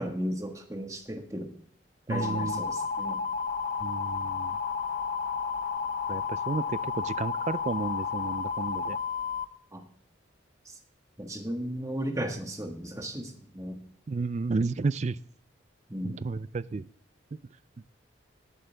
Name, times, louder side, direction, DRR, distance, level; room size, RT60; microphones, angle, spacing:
voice 1, 0.0-1.5 2.1-3.2 9.7-9.8 10.6-10.8 11.2-13.8 15.9-16.3, equal, 15° right, 4 dB, 1.5 m, -35 dB
sound 1, 2.1-9.4, left 5 dB, 45° left, 0.8 m, -32 dB
voice 2, 2.1-2.5 3.8-4.6 6.1-9.0 14.1-15.2 16.0-16.9, right 3 dB, 35° right, 18 dB, 0.4 m, -32 dB
19.0 x 8.2 x 3.4 m, 0.62 s
head